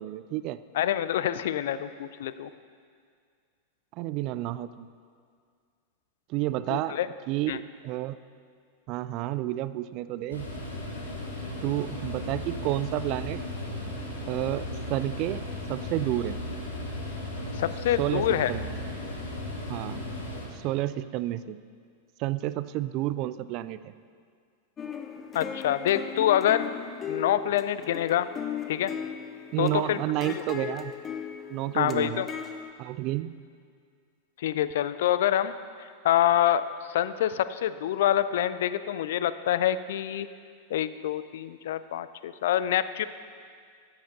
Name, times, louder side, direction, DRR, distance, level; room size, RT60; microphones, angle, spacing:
voice 1, 0.0-0.6 3.9-4.9 6.3-7.0 7.3-8.2 8.9-10.5 11.6-13.4 14.3-15.4 15.7-16.4 18.0-18.7 19.7-20.1 20.5-21.6 22.2-23.9 29.5-30.9 31.5-32.2 32.8-33.4, right 15 dB, 40° right, 14 dB, 0.3 m, -30 dB
voice 2, 0.7-2.5 6.7-7.1 7.5-7.6 17.6-18.5 25.3-26.7 27.1-28.3 28.7-28.9 29.6-30.0 30.4-30.5 31.7-32.3 34.4-35.5 35.8-40.3 40.7-43.0, left 11 dB, 55° left, 14 dB, 0.3 m, -26 dB
sound 1, 10.3-20.4, left 1 dB, 70° left, 1.8 m, -36 dB
sound 2, 24.8-32.7, left 8 dB, 25° left, 0.7 m, -37 dB
13.5 x 7.9 x 4.0 m, 2.1 s
figure-of-eight pair, 90°, 0 cm